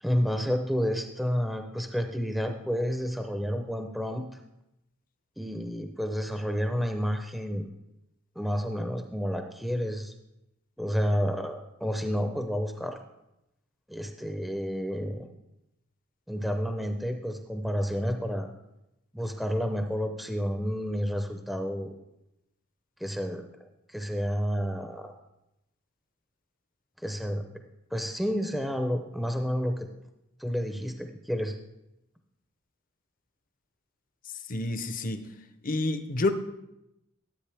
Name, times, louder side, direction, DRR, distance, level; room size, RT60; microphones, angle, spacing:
voice 1, 0.0-4.2 5.4-7.7 8.4-10.1 10.8-13.0 13.9-15.3 16.3-18.5 19.1-21.9 23.0-23.5 23.9-25.1 27.0-27.4 27.9-29.9 30.4-31.6, equal, ahead, 0.6 m, -30 dB
voice 2, 34.5-35.2 35.6-36.3, left 2 dB, 40° left, 0.7 m, -28 dB
13.0 x 8.1 x 3.4 m
head